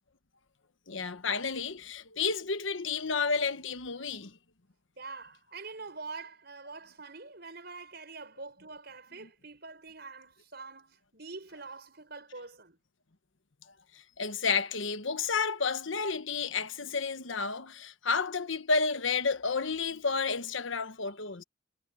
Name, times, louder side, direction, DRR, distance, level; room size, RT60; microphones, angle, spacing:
voice 1, 0.9-4.4 9.2-9.3 13.9-21.4, left 5 dB, 70° left, 1.2 m, -31 dB
voice 2, 5.0-12.8, right 4 dB, 50° right, 6.8 m, -45 dB
head